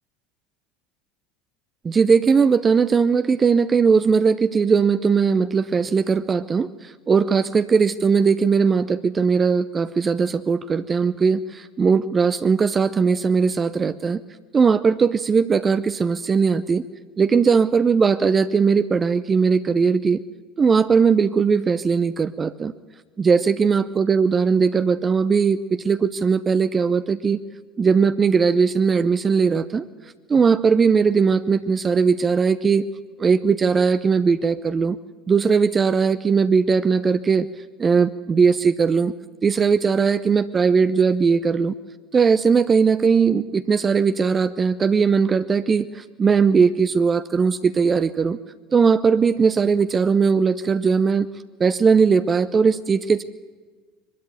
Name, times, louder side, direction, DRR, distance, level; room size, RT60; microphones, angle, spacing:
voice 1, 1.8-14.2 14.5-16.8 17.2-20.2 20.6-22.7 23.2-27.4 27.8-29.8 30.3-32.9 33.2-35.0 35.3-37.5 37.8-39.1 39.4-41.7 42.1-48.4 48.7-51.3 51.6-53.2, right 5 dB, 25° right, 12 dB, 0.6 m, -19 dB
22.0 x 13.0 x 9.2 m, 1.4 s
hypercardioid pair, 70°, 0 cm